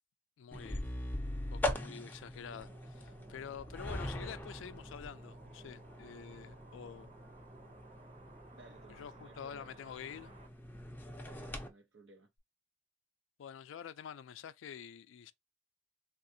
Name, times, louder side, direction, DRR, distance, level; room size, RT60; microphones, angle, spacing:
voice 1, 0.4-0.8 1.5-7.1 8.9-10.3 13.4-15.3, left 8 dB, 85° left, 0.3 m, -48 dB
sound 1, 0.5-11.7, left 1 dB, 10° left, 0.4 m, -42 dB
sound 2, 2.5-10.5, right 2 dB, 35° right, 0.8 m, -57 dB
voice 2, 8.5-9.7 11.2-12.3, right 2 dB, 80° right, 0.8 m, -59 dB
3.5 x 2.4 x 2.6 m
head